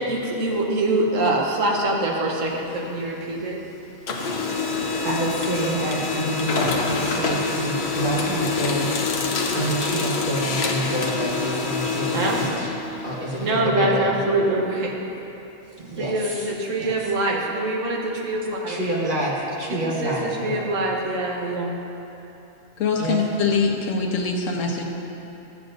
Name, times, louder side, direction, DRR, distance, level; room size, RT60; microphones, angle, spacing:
voice 1, 0.0-3.6 12.1-12.4 13.4-14.9 16.0-18.8 20.0-21.7, right 2 dB, 80° right, -1 dB, 1.4 m, -24 dB
Printer, 2.4-3.6 3.9-13.5, left 4 dB, 60° left, 0.9 m, -26 dB
voice 2, 5.0-8.9 9.5-12.7 13.0-14.2 15.7-16.5 16.8-17.0 18.7-20.7 23.0-23.3, right 1 dB, 40° right, -5 dB, 1.4 m, -28 dB
voice 3, 22.8-24.8, left 4 dB, 85° left, 0 dB, 1.2 m, -23 dB
12.0 x 8.0 x 2.6 m, 3.0 s
omnidirectional pair, 1.3 m